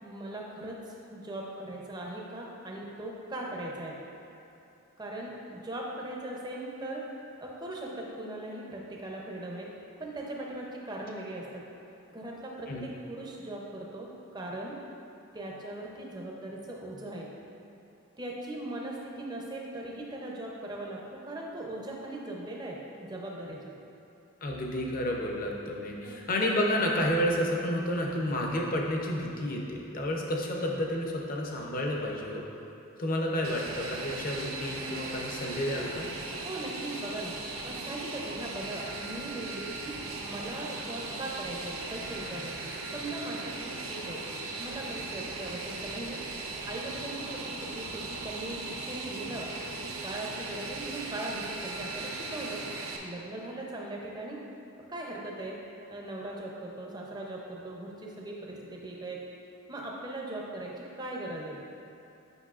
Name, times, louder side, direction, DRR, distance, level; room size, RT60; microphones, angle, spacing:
voice 1, 0.0-4.0 5.0-7.1 7.4-9.7 10.0-11.6 12.1-14.8 15.3-17.3 18.2-23.8 26.0-26.2 36.4-37.3 37.6-44.2 44.6-46.2 46.6-49.5 50.0-52.6 53.0-54.4 54.9-55.6 55.9-59.2 59.7-61.6, right 1 dB, 20° right, -2 dB, 0.6 m, -39 dB
voice 2, 24.4-32.4 33.0-36.1, left 1 dB, 40° left, -1 dB, 0.7 m, -30 dB
Fixed-wing aircraft airplane, 33.4-53.0, right 3 dB, 80° right, 0.6 m, -38 dB
8.1 x 5.4 x 2.4 m, 2.9 s
head